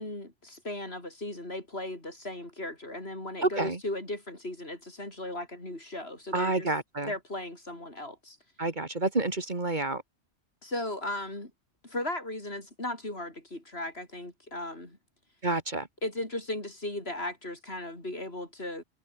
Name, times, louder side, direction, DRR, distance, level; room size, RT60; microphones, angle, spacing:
voice 1, 0.0-6.7 7.0-8.4 10.6-11.5 11.8-15.0 16.0-18.8, left 1 dB, 60° left, 6.4 m, -37 dB
voice 2, 3.4-3.8 6.3-7.1 8.6-10.0 15.4-15.9, right 2 dB, 40° right, 2.2 m, -29 dB
omnidirectional pair, 1.2 m